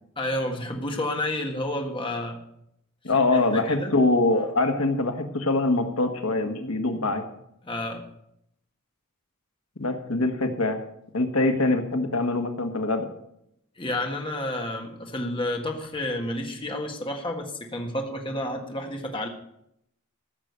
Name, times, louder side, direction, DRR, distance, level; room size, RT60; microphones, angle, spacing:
voice 1, 0.2-2.4 3.3-3.9 7.6-8.0 13.8-19.3, left 1 dB, 25° left, 2 dB, 1.7 m, -30 dB
voice 2, 3.0-7.2 9.8-10.8 11.1-13.1, left 2 dB, 80° left, 5 dB, 1.5 m, -24 dB
14.5 x 6.4 x 8.0 m, 0.77 s
head